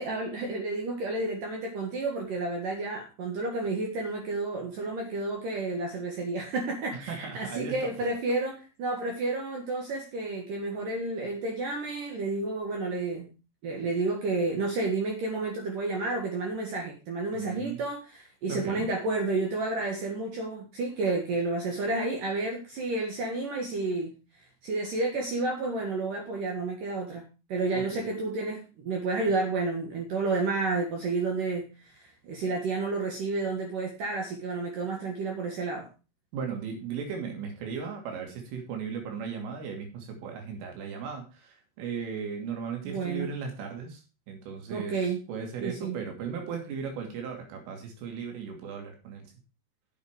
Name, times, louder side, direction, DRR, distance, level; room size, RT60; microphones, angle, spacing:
voice 1, 0.0-13.3 13.6-24.1 24.6-27.2 27.5-31.7 31.9-35.9 42.8-43.3 44.7-45.2 45.6-46.0, right 3 dB, 60° right, 1 dB, 2.5 m, -31 dB
voice 2, 7.1-7.8 17.3-17.8 18.5-18.9 27.7-28.1 36.3-44.0 44.3-45.0 45.3-49.2, right 6 dB, 80° right, 2 dB, 5.2 m, -36 dB
9.7 x 7.3 x 4.9 m, 0.30 s
omnidirectional pair, 5.7 m